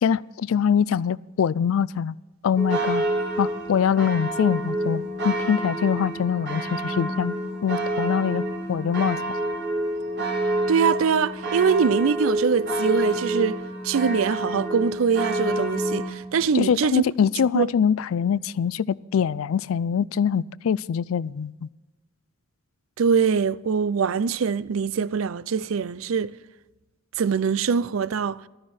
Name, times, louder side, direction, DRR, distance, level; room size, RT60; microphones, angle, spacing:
voice 1, 0.0-2.2 2.4-3.0 3.4-7.4 7.6-9.2 16.5-21.7, left 7 dB, 90° left, 0.4 m, -23 dB
sound 1, 2.6-16.1, right 1 dB, 60° right, 2.8 m, -28 dB
voice 2, 10.7-13.6 13.8-17.0 17.5-17.7 23.0-26.3 27.2-28.4, right 6 dB, 80° right, 0.5 m, -23 dB
14.5 x 12.5 x 4.3 m
head